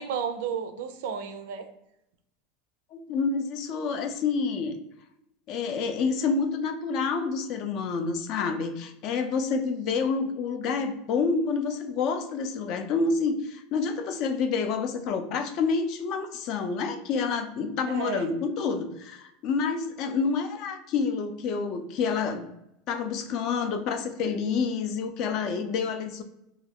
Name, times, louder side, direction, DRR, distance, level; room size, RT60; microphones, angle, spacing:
voice 1, 0.0-1.7 17.9-18.3, right 7 dB, 80° right, 8 dB, 0.4 m, -32 dB
voice 2, 2.9-4.8 5.5-22.5 22.9-26.2, left 5 dB, 50° left, 7 dB, 0.4 m, -28 dB
2.3 x 2.2 x 3.4 m, 0.82 s
supercardioid pair, 145°, 0 cm